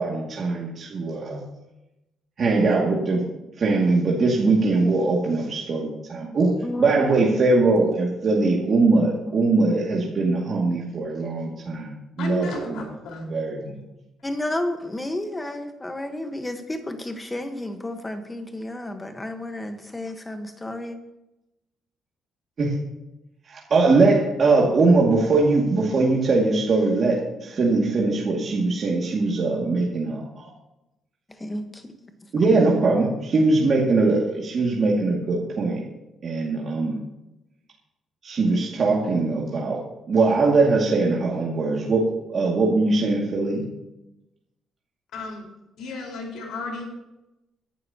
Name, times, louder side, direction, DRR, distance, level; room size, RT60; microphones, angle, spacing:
voice 1, 0.0-1.4 2.4-3.2 3.6-6.5 6.8-12.8 13.2-13.7 22.6-22.8 23.5-30.5 32.3-35.8 36.2-37.0 38.2-39.8 40.1-43.6, right 3 dB, 35° right, -4 dB, 2.2 m, -21 dB
voice 2, 6.6-7.2 14.2-21.0 31.4-31.8, left 1 dB, 10° left, 6 dB, 1.3 m, -31 dB
voice 3, 12.2-13.4 45.1-45.5 45.8-46.9, left 3 dB, 80° left, 0 dB, 4.6 m, -33 dB
23.5 x 11.5 x 2.9 m, 0.93 s
cardioid pair, 165°, 0 cm